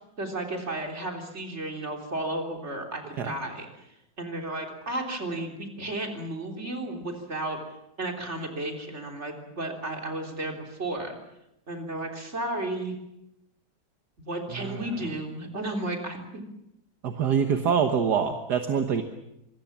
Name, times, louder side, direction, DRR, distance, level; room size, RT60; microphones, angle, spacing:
voice 1, 0.2-3.7 4.2-7.6 8.0-11.2 11.7-13.0 14.3-16.2, right 1 dB, 35° right, 3 dB, 3.9 m, -33 dB
voice 2, 14.5-14.8 17.0-19.0, right 7 dB, 65° right, 7 dB, 1.8 m, -25 dB
25.5 x 21.5 x 7.4 m, 0.83 s
omnidirectional pair, 1.9 m